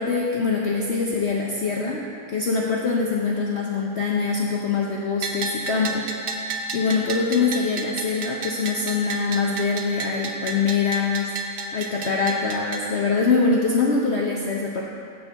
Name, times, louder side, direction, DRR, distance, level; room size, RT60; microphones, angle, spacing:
voice 1, 0.0-2.0 2.3-6.1 6.7-14.8, left 4 dB, 60° left, -3 dB, 0.7 m, -24 dB
Bell, 5.2-12.8, right 2 dB, 75° right, 0.5 m, -31 dB
7.2 x 5.2 x 6.7 m, 2.4 s
omnidirectional pair, 1.8 m